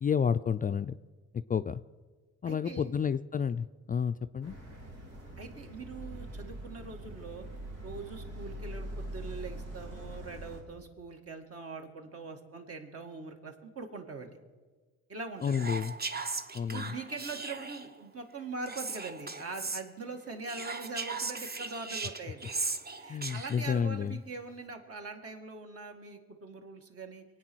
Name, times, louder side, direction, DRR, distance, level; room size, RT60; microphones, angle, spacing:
voice 1, 0.0-1.0 1.5-1.8 2.4-4.5 15.4-15.9 16.5-16.9 23.1-24.2, left 7 dB, 30° left, 11 dB, 0.4 m, -30 dB
voice 2, 2.5-2.9 5.4-7.5 7.8-14.4 15.1-15.6 16.7-22.5 22.9-27.2, right 3 dB, 50° right, 4 dB, 2.1 m, -42 dB
sound 1, 4.4-10.6, right 1 dB, 85° right, 3.9 m, -43 dB
Whispering, 15.4-17.9 18.7-19.8 20.4-23.7, right 3 dB, 30° right, 1.0 m, -38 dB
23.0 x 9.0 x 6.3 m, 1.4 s
cardioid pair, 90°, 30 cm